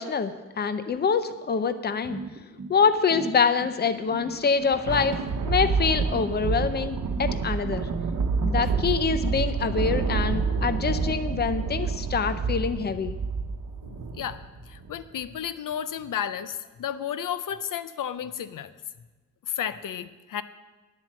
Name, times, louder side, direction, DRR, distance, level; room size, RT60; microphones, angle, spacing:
voice 1, 0.0-2.2 2.7-5.2 5.4-7.9 8.4-13.1, left 5 dB, 30° left, 11 dB, 0.5 m, -25 dB
sound 1, 2.1-9.7, right 3 dB, 35° right, 0.9 m, -39 dB
Thunder, 4.3-15.0, right 4 dB, 90° right, 0.9 m, -28 dB
voice 2, 13.8-18.7 19.4-20.4, left 9 dB, 90° left, 13 dB, 0.6 m, -33 dB
10.5 x 7.5 x 7.4 m, 1.2 s
wide cardioid pair, 175°, 31 cm